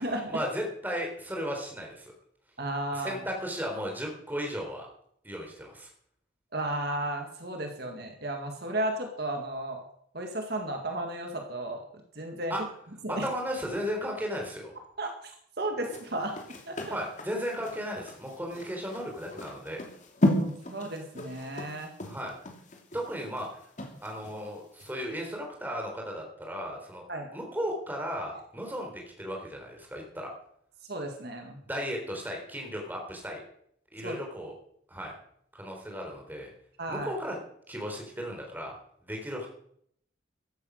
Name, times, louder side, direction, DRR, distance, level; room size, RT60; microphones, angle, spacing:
voice 1, 0.0-2.1 2.9-4.9 5.2-5.9 12.5-12.6 13.1-14.7 16.9-19.9 22.0-22.4 22.9-23.6 24.0-27.0 27.3-30.3 31.7-33.4 33.9-34.5 34.9-35.1 35.5-36.5 36.9-37.4 37.7-39.5, equal, 10° right, 1 dB, 3.9 m, -35 dB
voice 2, 2.6-3.2 6.5-9.8 10.1-11.8 12.2-12.5 13.0-13.3 15.0-15.3 15.6-16.4 16.7-17.0 20.3-21.9 27.1-27.3 30.9-31.6 34.0-34.2 36.8-37.1, right 1 dB, 50° right, 3 dB, 2.0 m, -34 dB
sound 1, 15.8-24.4 24.8-24.9, left 1 dB, 40° left, 2.8 m, -33 dB
15.0 x 12.0 x 6.5 m, 0.69 s
head